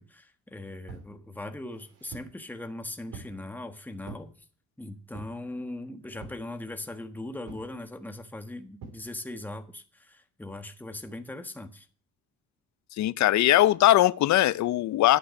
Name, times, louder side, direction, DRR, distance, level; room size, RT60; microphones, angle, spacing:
voice 1, 0.0-4.3 4.8-11.9, left 1 dB, 5° left, 1.3 m, -40 dB
sound 1, 0.9-1.1 1.7-2.4 3.1-3.4 4.0-4.3 5.1-5.5 6.2-6.5 7.5-7.7 8.8-9.0, right 5 dB, 75° right, 4.7 m, -44 dB
voice 2, 13.0-15.2, left 14 dB, 65° left, 0.6 m, -20 dB
11.5 x 9.3 x 6.3 m
cardioid pair, 90°, 30 cm